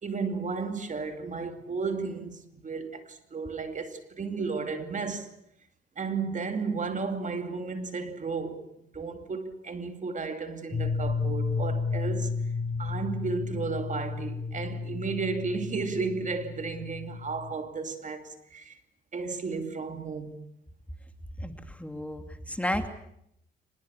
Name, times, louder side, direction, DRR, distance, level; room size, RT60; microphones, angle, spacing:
voice 1, 0.0-5.3 6.0-8.6 8.9-12.3 12.8-18.7 19.1-20.4, right 4 dB, 40° right, 2.7 m, -33 dB
sound 1, 10.7-17.5, left 4 dB, 30° left, 5.6 m, -32 dB
voice 2, 21.4-22.9, left 1 dB, 5° left, 2.4 m, -33 dB
24.5 x 21.0 x 8.4 m
cardioid pair, 90°, 20 cm